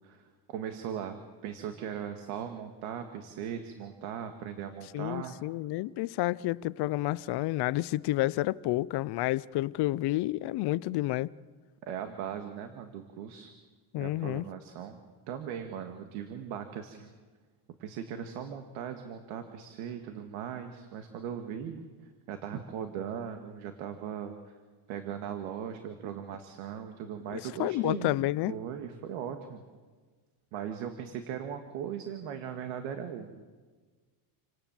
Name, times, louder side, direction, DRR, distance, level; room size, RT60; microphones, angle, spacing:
voice 1, 0.0-1.2 1.4-5.4 11.9-13.5 14.0-15.0 15.3-17.1 17.8-24.3 24.9-28.2 28.5-29.6 30.5-33.3, right 8 dB, 80° right, 2.0 m, -39 dB
voice 2, 4.9-11.3 13.9-14.5 27.3-28.5, left 17 dB, 55° left, 0.7 m, -30 dB
28.5 x 18.0 x 7.3 m
cardioid pair, 135°, 49 cm